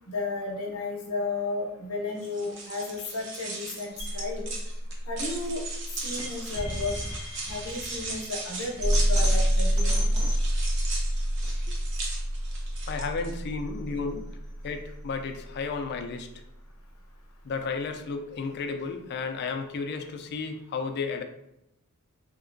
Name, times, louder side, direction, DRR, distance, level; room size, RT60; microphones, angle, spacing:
voice 1, 0.1-4.5 5.1-5.6 6.0-7.0 7.4-10.3, left 3 dB, 75° left, 1 dB, 0.8 m, -33 dB
sound 1, 2.2-13.3, right 3 dB, 60° right, 0.7 m, -38 dB
sound 2, 4.0-16.0, equal, 80° right, 1.0 m, -28 dB
voice 2, 12.9-14.3 14.6-16.3 17.4-21.2, left 4 dB, 50° left, 7 dB, 0.4 m, -33 dB
3.2 x 2.9 x 2.5 m, 0.84 s
head